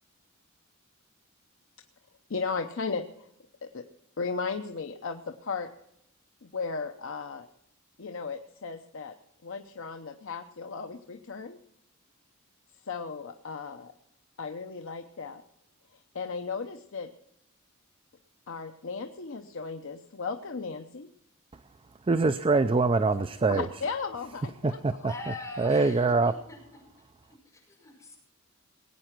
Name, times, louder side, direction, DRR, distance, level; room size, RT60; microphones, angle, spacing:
voice 1, 2.3-3.3 3.6-3.8 4.2-5.7 6.4-7.5 8.0-9.1 9.4-11.6 12.8-13.9 14.4-15.4 15.9-17.1 18.5-21.1 23.5-24.8, left 4 dB, 65° left, 6 dB, 0.7 m, -35 dB
voice 2, 22.1-23.7 24.6-25.1 25.6-26.3, right 3 dB, 25° right, 11 dB, 0.4 m, -24 dB
voice 3, 25.1-26.6 27.2-28.2, left 2 dB, 15° left, -2 dB, 5.6 m, -42 dB
19.5 x 9.0 x 6.0 m, 0.78 s
head